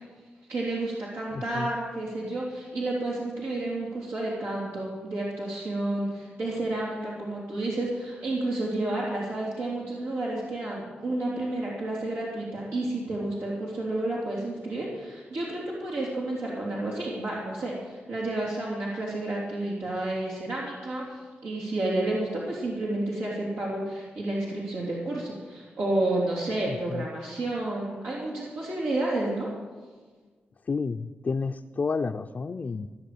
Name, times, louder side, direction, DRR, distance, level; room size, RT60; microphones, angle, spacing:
voice 1, 0.5-29.5, right 2 dB, 85° right, -6 dB, 3.5 m, -30 dB
voice 2, 1.3-1.7 26.7-27.1 30.7-32.9, left 4 dB, 45° left, 4 dB, 0.6 m, -31 dB
17.0 x 6.2 x 8.7 m, 1.4 s
cardioid pair, 60°, 4 cm